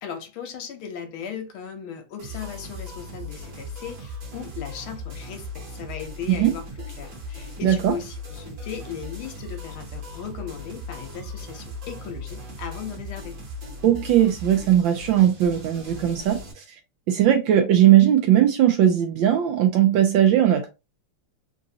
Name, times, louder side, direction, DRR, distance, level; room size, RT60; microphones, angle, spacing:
voice 1, 0.0-6.7 7.0-13.4, left 7 dB, 70° left, 1.5 m, -37 dB
sound 1, 2.2-16.5, left 1 dB, 55° right, 1.6 m, -38 dB
voice 2, 7.6-7.9 13.8-16.6 17.1-20.7, right 11 dB, 75° right, 1.2 m, -19 dB
3.8 x 2.5 x 2.7 m
omnidirectional pair, 2.4 m